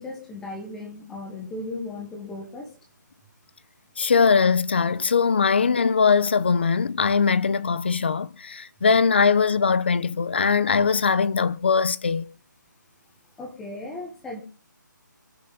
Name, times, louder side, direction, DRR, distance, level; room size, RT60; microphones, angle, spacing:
voice 1, 0.0-2.7 13.4-14.4, left 2 dB, 5° left, 1.1 m, -36 dB
voice 2, 4.0-12.2, left 5 dB, 35° left, 0.6 m, -21 dB
24.5 x 11.5 x 4.0 m
hypercardioid pair, 175°, 11 cm